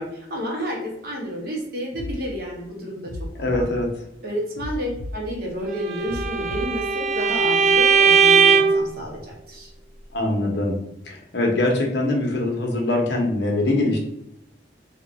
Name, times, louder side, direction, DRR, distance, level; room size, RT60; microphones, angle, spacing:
voice 1, 0.0-3.1 3.4-3.7 4.2-9.7, equal, 55° right, -2 dB, 1.1 m, -30 dB
sound 1, 1.9-2.1 3.0-3.6 4.5-5.1 6.0-6.6, left 1 dB, 90° right, 0.9 m, -33 dB
voice 2, 3.4-4.0 10.1-10.8 11.0-14.0, left 2 dB, 70° left, 0 dB, 0.9 m, -23 dB
Bowed string instrument, 5.8-8.9, right 5 dB, 35° right, 0.3 m, -18 dB
3.0 x 2.6 x 3.9 m, 0.81 s
head